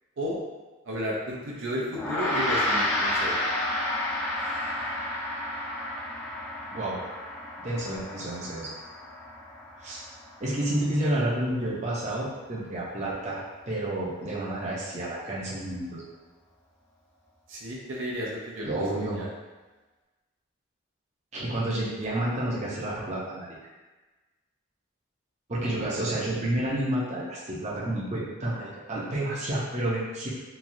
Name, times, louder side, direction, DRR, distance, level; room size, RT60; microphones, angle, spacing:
voice 1, 0.8-3.4 4.4-4.7 17.5-19.3 25.7-25.9, equal, 75° right, -4 dB, 0.6 m, -33 dB
Gong, 1.9-11.6, left 1 dB, 15° left, 0.4 m, -31 dB
voice 2, 7.6-8.7 9.8-10.0 10.4-16.0 18.6-19.2 21.3-23.5 25.5-30.3, right 1 dB, 35° right, -7 dB, 0.6 m, -30 dB
3.0 x 2.3 x 2.6 m, 1.2 s
head